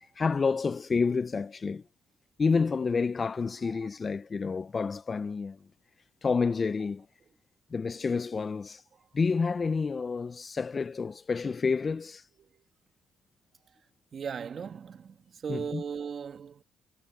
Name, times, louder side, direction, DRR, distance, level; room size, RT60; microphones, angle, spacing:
voice 1, 0.2-1.8 2.4-5.6 6.2-7.1 7.7-8.8 9.1-12.3 15.5-15.8, left 5 dB, 35° left, 0.4 m, -29 dB
voice 2, 14.1-15.2 15.4-16.6, right 7 dB, 50° right, 1.8 m, -37 dB
cardioid pair, 90°, 0 cm